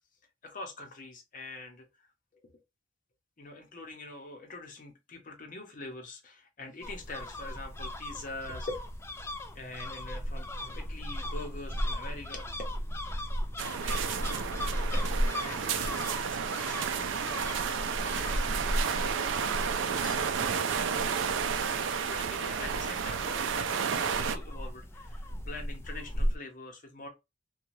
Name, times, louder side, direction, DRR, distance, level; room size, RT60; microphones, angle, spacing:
voice 1, 0.4-1.9 2.3-2.6 3.4-8.9 9.5-12.5 14.9-20.2 21.9-27.1, left 2 dB, 45° left, 0.8 m, -44 dB
sound 1, 6.8-26.4, equal, 15° left, 0.3 m, -36 dB
sound 2, 13.6-24.4, right 6 dB, 75° right, 0.4 m, -31 dB
2.7 x 2.3 x 3.0 m
head